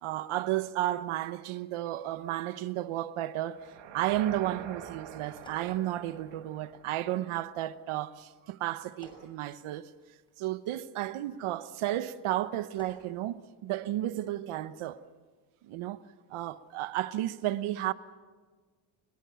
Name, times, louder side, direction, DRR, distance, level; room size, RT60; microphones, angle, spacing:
voice 1, 0.0-3.7 3.9-9.9 10.4-15.0 15.6-16.0 16.3-17.9, right 14 dB, 75° right, 1.2 m, -33 dB
sound 1, 3.5-7.7, right 9 dB, 60° right, 2.1 m, -46 dB
sound 2, 5.2-6.6 8.7-10.3 12.4-13.1, left 1 dB, 10° left, 6.4 m, -55 dB
25.0 x 22.0 x 7.1 m
cardioid pair, 125°, 50 cm